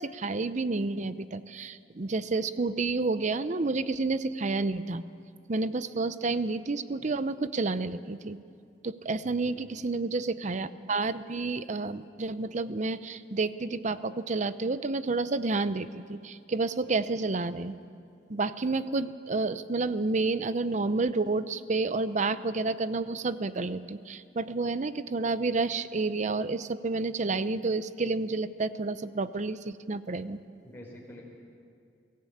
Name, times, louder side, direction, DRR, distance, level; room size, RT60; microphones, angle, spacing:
voice 1, 0.0-5.0 5.5-8.4 8.8-17.8 18.3-30.4, right 3 dB, 45° right, 14 dB, 0.6 m, -30 dB
voice 2, 9.2-9.8 30.6-31.2, left 1 dB, 15° left, -3 dB, 4.9 m, -48 dB
23.0 x 15.0 x 8.6 m, 2.4 s
head